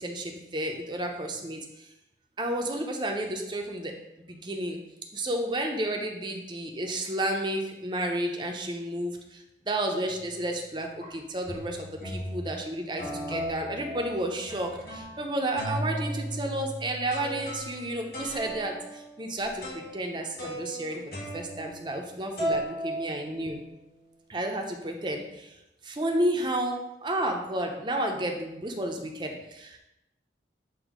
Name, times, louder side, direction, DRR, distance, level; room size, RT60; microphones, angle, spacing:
voice 1, 0.0-1.9 2.4-4.0 4.3-4.8 5.1-23.6 24.3-25.6 25.8-29.8, right 1 dB, 25° right, 2 dB, 0.7 m, -32 dB
sound 1, 10.0-10.4 11.0-11.1 11.5-12.5 13.0-15.2 15.6-22.1 22.4-23.8, right 1 dB, 60° left, 2.4 m, -36 dB
8.1 x 2.7 x 5.0 m, 0.93 s
head